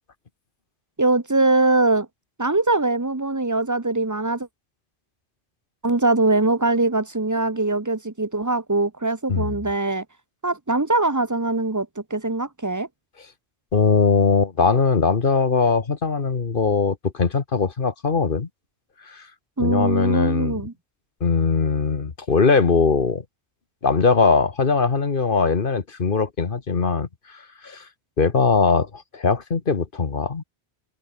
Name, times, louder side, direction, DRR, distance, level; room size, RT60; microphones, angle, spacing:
voice 1, 1.0-2.1 2.4-4.5 5.8-10.0 10.4-12.9 19.6-20.7, right 2 dB, 15° right, 1.0 m, -22 dB
voice 2, 13.7-18.5 19.1-19.3 19.6-20.6 21.2-23.2 23.8-27.9 28.2-30.4, left 4 dB, 50° left, 1.5 m, -21 dB
open air
omnidirectional pair, 1.1 m